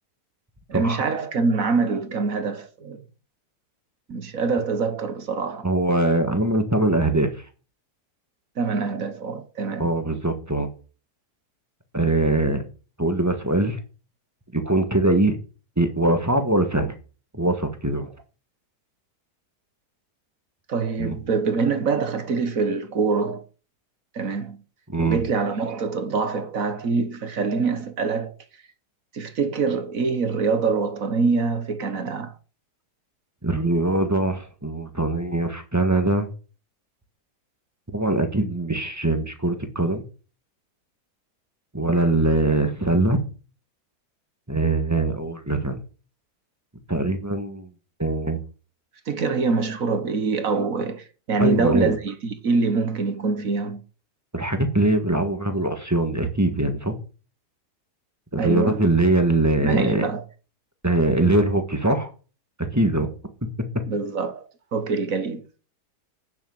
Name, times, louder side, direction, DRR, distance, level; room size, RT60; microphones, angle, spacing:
voice 1, 0.7-3.0 4.1-5.7 8.6-9.9 20.7-23.4 24.1-24.6 25.0-28.3 29.1-32.3 49.1-53.8 58.4-58.8 59.6-60.2 63.9-64.4 64.7-65.4, right 4 dB, 55° right, 1.7 m, -24 dB
voice 2, 5.6-7.3 9.8-10.7 11.9-12.6 13.0-13.8 14.5-15.4 15.8-16.9 17.3-18.1 21.0-21.2 24.9-25.2 33.4-36.3 37.9-40.0 41.7-43.2 44.5-45.8 46.9-47.7 48.0-48.4 51.4-51.9 54.3-56.9 58.3-60.1 60.8-62.1 62.6-63.1, right 2 dB, 10° right, 1.5 m, -22 dB
9.0 x 7.2 x 7.3 m
omnidirectional pair, 1.8 m